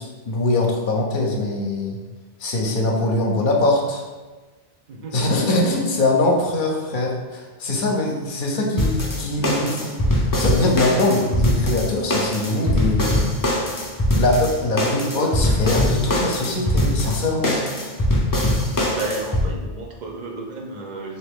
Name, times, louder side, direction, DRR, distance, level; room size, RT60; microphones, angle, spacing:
voice 1, 0.0-2.0 2.4-4.0 5.1-13.2 14.2-17.6, left 2 dB, 60° left, 1 dB, 0.7 m, -22 dB
voice 2, 4.9-5.2 17.8-17.9 18.9-21.2, right 3 dB, 55° right, 0 dB, 0.5 m, -32 dB
sound 1, 8.8-19.5, left 1 dB, 30° left, 0.4 m, -22 dB
3.2 x 2.8 x 3.5 m, 1.3 s
omnidirectional pair, 1.0 m